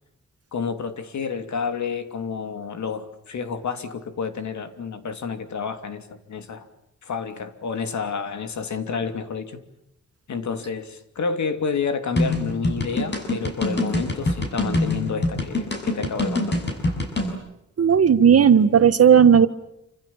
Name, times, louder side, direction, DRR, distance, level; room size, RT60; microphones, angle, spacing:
voice 1, 0.5-6.7 7.0-9.6 10.3-16.6, left 5 dB, 75° left, 8 dB, 2.9 m, -29 dB
sound 1, 12.2-17.3, left 2 dB, 40° left, 6.7 m, -24 dB
voice 2, 17.8-19.5, right 7 dB, 55° right, 11 dB, 1.5 m, -14 dB
28.5 x 26.5 x 7.3 m, 0.84 s
wide cardioid pair, 165°, 29 cm